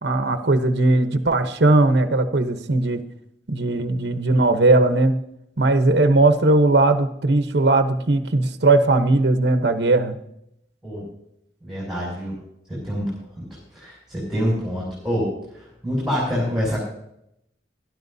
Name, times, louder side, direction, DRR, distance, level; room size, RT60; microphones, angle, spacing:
voice 1, 0.0-3.0 3.5-5.2 5.6-10.2, right 2 dB, 75° right, 8 dB, 0.9 m, -18 dB
voice 2, 11.6-12.4 12.7-13.1 13.4-13.5 13.7-16.8, equal, ahead, -7 dB, 6.2 m, -26 dB
21.5 x 12.0 x 2.7 m, 0.77 s
head